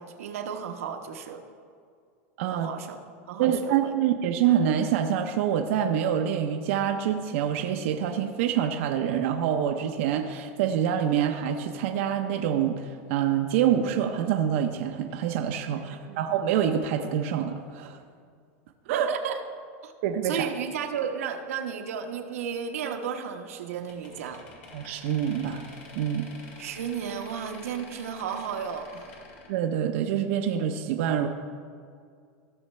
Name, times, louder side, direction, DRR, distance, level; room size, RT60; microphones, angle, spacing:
voice 1, 0.0-1.4 2.5-3.0 3.3-3.9 15.7-16.2 18.9-19.4 19.8-19.9 20.2-24.4 26.6-29.2, right 7 dB, 85° right, 5 dB, 1.0 m, -33 dB
voice 2, 2.4-2.7 3.4-18.0 18.9-19.1 20.0-20.5 24.7-25.6 25.9-26.3 29.5-31.3, right 9 dB, 65° right, 5 dB, 0.7 m, -26 dB
sound 1, 23.9-29.5, left 3 dB, 70° left, 2.2 m, -48 dB
16.0 x 6.4 x 3.3 m, 2.2 s
supercardioid pair, 130°, 7 cm